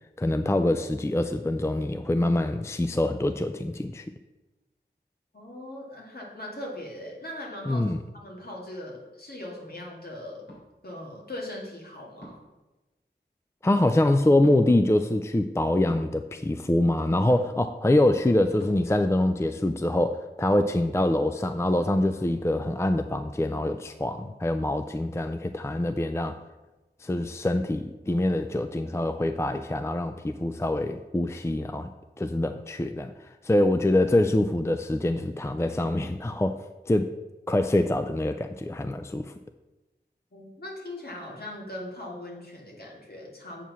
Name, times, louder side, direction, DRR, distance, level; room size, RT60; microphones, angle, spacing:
voice 1, 0.2-4.0 7.7-8.0 13.6-26.4 27.0-31.9 32.2-36.6 36.9-37.1 37.5-39.3, left 1 dB, 15° left, 9 dB, 0.4 m, -25 dB
voice 2, 5.3-7.8 8.1-10.5 10.8-12.4 40.3-43.6, left 1 dB, 55° left, -3 dB, 2.2 m, -39 dB
sound 1, 10.5-10.6 12.2-12.5 14.4-14.6 15.9-16.1 17.3-17.6 18.6-18.7, equal, 75° left, 3.0 m, -43 dB
7.4 x 4.6 x 6.9 m, 1.1 s
wide cardioid pair, 60°, 19 cm